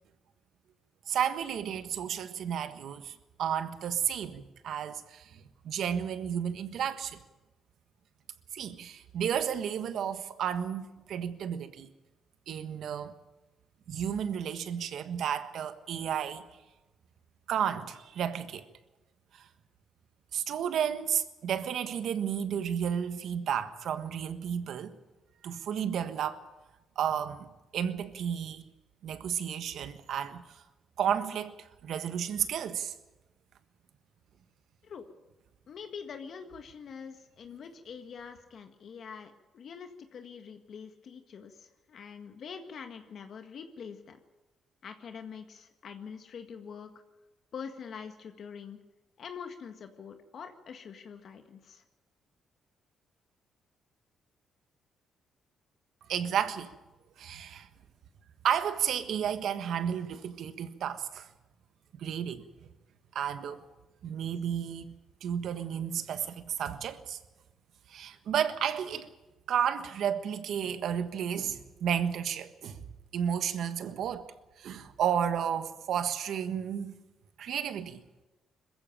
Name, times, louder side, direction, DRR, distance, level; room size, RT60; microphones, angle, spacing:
voice 1, 1.1-7.2 8.5-11.9 12.5-13.1 13.9-16.4 17.5-18.6 19.3-19.5 20.3-25.0 25.4-26.4 26.9-27.5 27.7-28.6 29.0-30.6 31.0-32.9 56.1-56.7 57.2-57.7 58.4-61.3 62.0-62.5 63.1-63.6 64.0-64.9 65.2-67.2 67.9-69.1 69.5-72.8 73.1-74.3 74.6-76.9 77.4-78.0, right 8 dB, 70° right, 1.4 m, -32 dB
voice 2, 35.7-44.2 44.8-46.9 47.5-48.8 49.2-51.8, left 6 dB, 60° left, 1.7 m, -45 dB
21.5 x 15.0 x 8.8 m
cardioid pair, 90°, 0 cm